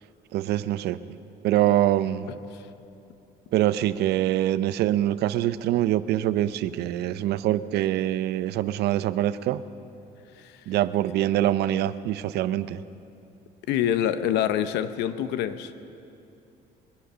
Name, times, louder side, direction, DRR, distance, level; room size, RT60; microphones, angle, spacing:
voice 1, 0.3-1.0 1.4-2.3 3.5-9.6 10.7-12.8, right 13 dB, 75° right, 15 dB, 0.6 m, -24 dB
voice 2, 13.7-15.7, left 10 dB, 90° left, 12 dB, 0.7 m, -26 dB
22.0 x 10.5 x 5.6 m, 2.8 s
cardioid pair, 110°, 17 cm